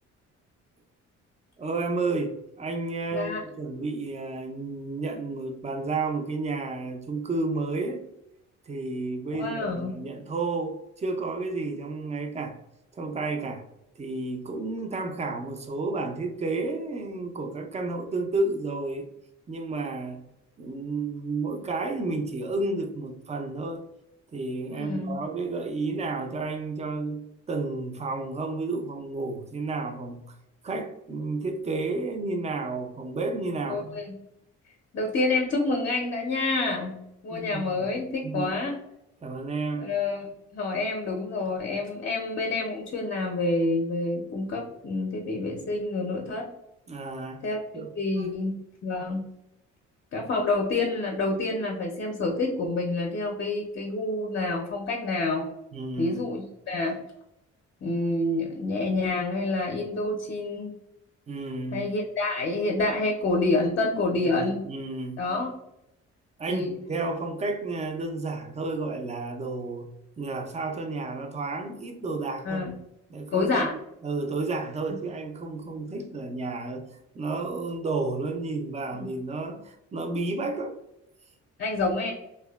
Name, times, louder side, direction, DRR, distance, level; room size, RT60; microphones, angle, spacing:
voice 1, 1.6-8.0 8.7-12.6 12.9-13.7 14.0-19.1 19.5-20.3 20.6-23.8 24.3-30.3 30.6-34.0 37.3-37.9 38.2-38.5 39.2-39.9 46.9-47.4 47.7-47.9 48.2-48.3 55.7-56.3 61.3-61.9 64.1-65.3 66.4-69.9 70.2-72.7 73.1-73.7 74.0-80.7, right 3 dB, 25° right, 5 dB, 0.4 m, -31 dB
voice 2, 3.1-3.4 9.3-10.0 24.7-25.2 33.7-34.0 34.9-37.0 37.2-38.8 39.8-46.5 47.4-47.6 48.0-48.6 48.8-49.3 50.1-55.5 56.0-57.0 57.8-60.7 61.7-64.6 65.2-65.5 66.5-66.7 72.4-72.8 73.3-73.7 74.9-75.0 79.0-79.1 81.6-82.1, left 2 dB, 40° left, 0 dB, 0.5 m, -28 dB
2.6 x 2.2 x 2.2 m, 0.84 s
cardioid pair, 90°, 30 cm